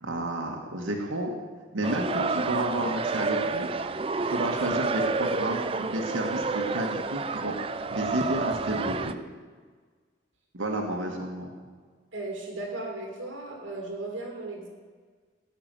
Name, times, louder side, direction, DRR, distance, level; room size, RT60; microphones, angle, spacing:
voice 1, 0.0-1.3 1.7-3.7 4.2-7.5 7.9-9.1 10.5-11.5, right 1 dB, 85° right, 1 dB, 1.5 m, -31 dB
sound 1, 1.8-9.1, right 4 dB, 30° right, 0.4 m, -30 dB
voice 2, 12.1-14.7, right 2 dB, 70° right, 0 dB, 2.2 m, -36 dB
17.5 x 6.0 x 7.5 m, 1.5 s
head